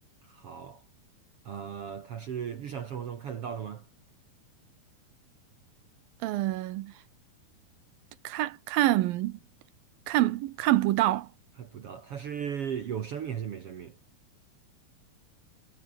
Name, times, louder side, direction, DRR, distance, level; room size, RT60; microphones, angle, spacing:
voice 1, 0.3-0.8 1.4-3.8 11.6-14.0, right 8 dB, 55° right, 1.7 m, -36 dB
voice 2, 6.2-6.9 8.2-9.4 10.1-11.3, right 15 dB, 80° right, 2.6 m, -26 dB
omnidirectional pair, 4.4 m